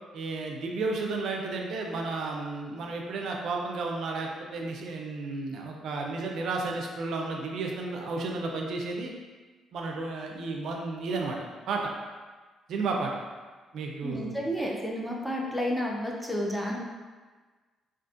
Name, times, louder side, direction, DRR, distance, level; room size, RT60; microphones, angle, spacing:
voice 1, 0.1-9.1 9.7-11.4 11.7-11.9 12.7-13.1 13.7-14.4, right 3 dB, 75° right, 0 dB, 0.3 m, -32 dB
voice 2, 14.0-16.8, equal, ahead, -2 dB, 0.4 m, -31 dB
2.5 x 2.4 x 2.4 m, 1.4 s
cardioid pair, 90°, 0 cm